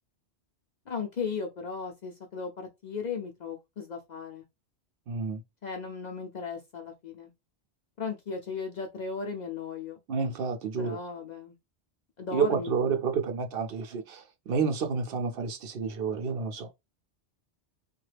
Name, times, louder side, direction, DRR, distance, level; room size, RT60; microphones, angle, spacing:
voice 1, 0.9-4.4 5.6-7.3 8.0-10.0 10.8-11.5 12.2-13.0, left 5 dB, 55° left, 0.5 m, -36 dB
voice 2, 5.1-5.4 10.1-11.0 12.3-16.7, right 5 dB, 65° right, 0.7 m, -29 dB
3.1 x 2.3 x 3.2 m
omnidirectional pair, 1.1 m